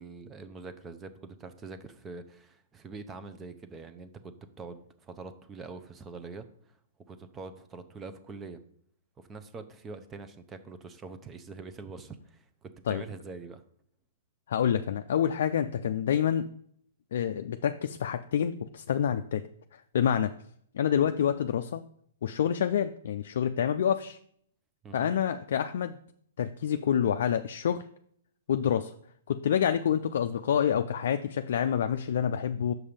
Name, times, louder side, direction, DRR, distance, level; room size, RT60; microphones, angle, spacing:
voice 1, 0.0-6.7 7.1-8.6 9.2-13.6 24.8-25.1, right 4 dB, 15° right, 10 dB, 0.7 m, -44 dB
voice 2, 14.5-16.5 17.1-19.4 19.9-20.3 20.7-21.8 22.2-24.2 24.9-25.9 26.4-27.8 28.5-28.9 29.3-32.7, left 9 dB, 65° left, 7 dB, 0.4 m, -27 dB
6.1 x 5.5 x 5.1 m, 0.65 s
hypercardioid pair, 130°, 0 cm